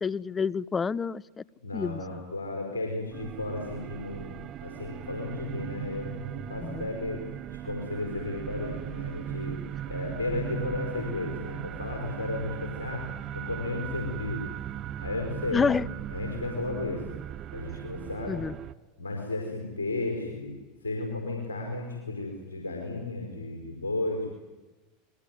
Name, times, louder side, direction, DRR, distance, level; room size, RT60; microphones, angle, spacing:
voice 1, 0.0-1.4 1.7-2.2 6.6-6.8 15.5-15.9 18.3-18.5, left 5 dB, 20° left, 20 dB, 0.9 m, -28 dB
voice 2, 1.6-4.3 4.6-7.2 7.5-9.6 9.9-13.0 13.3-14.4 15.0-15.8 16.1-17.0 17.5-18.4 19.0-20.5 20.8-24.4, left 2 dB, 85° left, 1 dB, 5.4 m, -34 dB
sound 1, 3.1-18.7, right 11 dB, 40° right, 1.0 m, -38 dB
28.0 x 22.0 x 9.5 m, 1.2 s
figure-of-eight pair, 80°, 0 cm